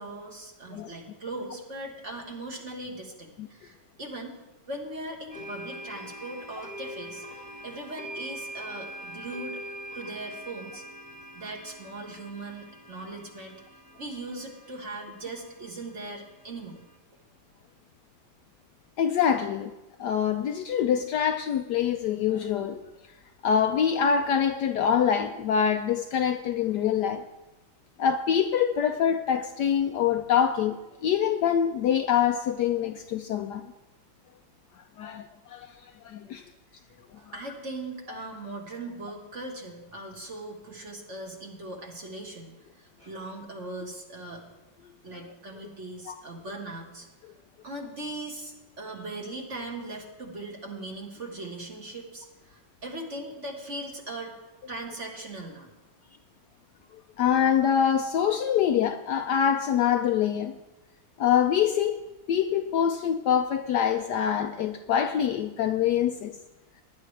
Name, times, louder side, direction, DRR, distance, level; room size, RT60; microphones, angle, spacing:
voice 1, 0.0-4.4 4.7-9.6 9.9-10.8 11.4-13.6 14.0-16.8 37.2-44.5 45.0-47.1 47.6-54.3 54.7-55.7, right 2 dB, 40° right, 1.9 m, -39 dB
sound 1, 5.3-16.9, right 1 dB, 5° left, 1.2 m, -43 dB
voice 2, 19.0-19.7 20.0-22.8 23.4-27.2 28.0-33.6 35.0-35.7 36.0-36.4 45.1-45.2 46.1-46.2 57.2-60.5 61.2-62.0 62.3-66.4, left 8 dB, 70° left, 1.0 m, -25 dB
19.0 x 10.5 x 3.3 m
omnidirectional pair, 2.1 m